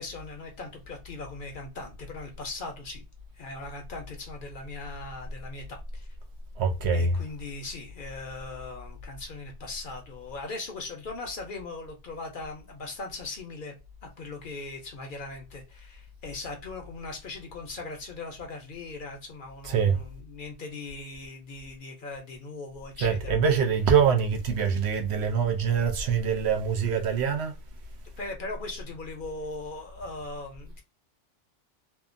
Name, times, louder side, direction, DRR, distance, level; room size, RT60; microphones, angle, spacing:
voice 1, 0.0-3.0 3.3-6.1 6.9-13.7 14.0-23.4 28.2-30.8, left 3 dB, 55° left, 0.7 m, -39 dB
voice 2, 6.6-7.2 19.6-20.0 23.0-27.5, right 6 dB, 70° right, 0.8 m, -24 dB
2.8 x 2.1 x 2.5 m
omnidirectional pair, 1.2 m